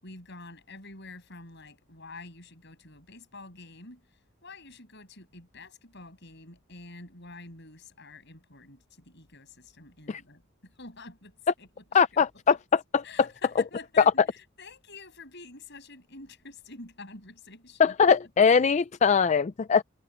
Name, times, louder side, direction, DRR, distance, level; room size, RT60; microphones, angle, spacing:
voice 1, 0.0-4.0 4.4-12.6 13.0-18.1, left 3 dB, 55° left, 7.3 m, -47 dB
voice 2, 11.9-13.0 17.8-19.8, left 6 dB, 35° left, 0.3 m, -22 dB
head